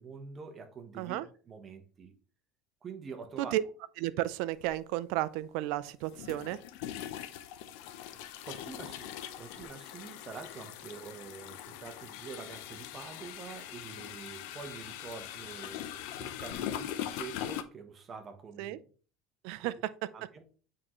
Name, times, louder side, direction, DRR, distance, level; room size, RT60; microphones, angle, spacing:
voice 1, 0.0-2.1 2.8-3.6 8.1-18.9 19.6-19.8 20.1-20.4, right 5 dB, 25° right, 1.0 m, -46 dB
voice 2, 4.0-6.6 18.6-18.8 19.4-19.7, right 15 dB, 65° right, 0.4 m, -33 dB
sound 1, 4.6-4.7 6.1-17.6, left 11 dB, 70° left, 0.6 m, -41 dB
8.5 x 3.8 x 3.1 m
supercardioid pair, 135°, 0 cm